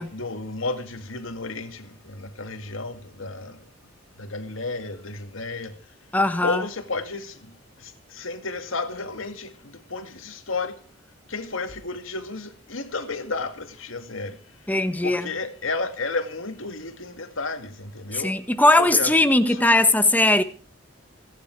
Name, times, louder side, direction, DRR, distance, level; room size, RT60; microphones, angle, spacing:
voice 1, 0.0-3.6 4.2-5.8 6.4-10.8 11.3-14.4 15.0-18.3 18.8-19.1 19.5-19.8, left 3 dB, 90° left, 2.3 m, -32 dB
voice 2, 6.1-6.6 14.7-15.3 18.1-20.4, left 2 dB, 10° left, 1.3 m, -19 dB
26.5 x 10.5 x 4.7 m
head